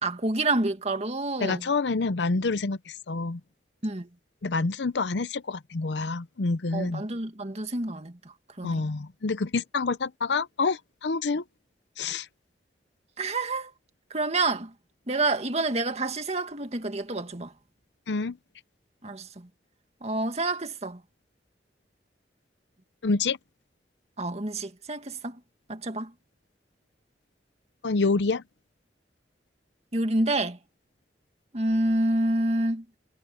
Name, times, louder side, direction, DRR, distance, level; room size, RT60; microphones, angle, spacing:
voice 1, 0.0-1.6 3.8-4.1 6.7-8.1 8.6-8.9 13.2-13.7 14.1-14.7 15.1-17.5 19.0-19.5 20.0-21.0 24.2-25.4 25.7-26.1 29.9-30.6 31.5-32.8, right 2 dB, 40° right, 2.0 m, -28 dB
voice 2, 1.4-3.4 4.4-7.0 8.6-11.4 12.0-12.3 18.1-18.4 23.0-23.4 27.8-28.4, left 3 dB, 75° left, 0.7 m, -27 dB
head